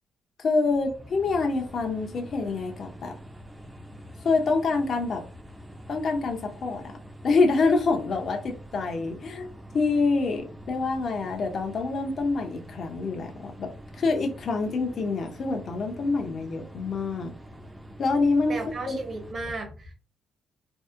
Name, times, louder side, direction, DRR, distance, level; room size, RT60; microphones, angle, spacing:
voice 1, 0.4-3.2 4.2-5.2 5.9-7.0 7.2-9.5 9.7-17.3 18.0-18.5 18.9-19.0, left 3 dB, 55° left, 3 dB, 0.5 m, -26 dB
sound 1, 0.6-19.3, equal, 15° right, 0.4 m, -45 dB
voice 2, 18.5-19.9, right 3 dB, 40° right, 4 dB, 0.8 m, -34 dB
2.6 x 2.0 x 2.4 m, 0.36 s
cardioid pair, 90°, 0 cm